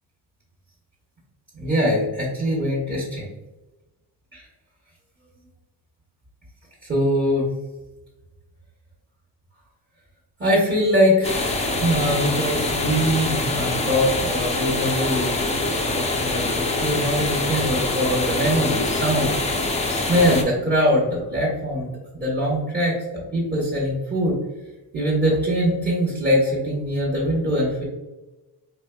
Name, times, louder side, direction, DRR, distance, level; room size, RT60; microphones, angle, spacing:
voice 1, 1.5-3.3 4.3-4.4 6.8-7.5 10.4-15.7 15.9-19.4 19.9-23.0 23.3-24.3 24.9-27.8, equal, 25° right, -6 dB, 1.0 m, -22 dB
sound 1, 11.2-20.4, left 2 dB, 15° left, 0.4 m, -24 dB
4.3 x 3.2 x 2.2 m, 1.1 s
wide cardioid pair, 135°, 39 cm